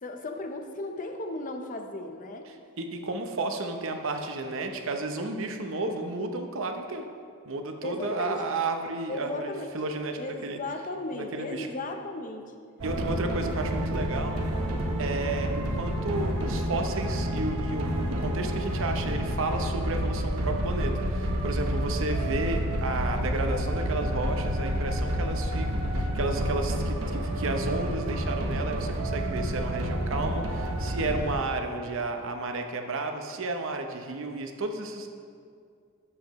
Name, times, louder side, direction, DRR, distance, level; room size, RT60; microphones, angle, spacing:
voice 1, 0.0-2.5 7.8-8.4 9.1-9.7 10.2-12.5, left 2 dB, 35° left, 5 dB, 0.6 m, -35 dB
voice 2, 2.8-7.0 7.4-10.6 11.1-11.7 12.8-14.4 15.0-35.1, right 2 dB, 60° right, 5 dB, 0.7 m, -32 dB
sound 1, 12.8-31.3, equal, 75° right, 1.1 m, -29 dB
12.5 x 7.4 x 3.0 m, 2.3 s
head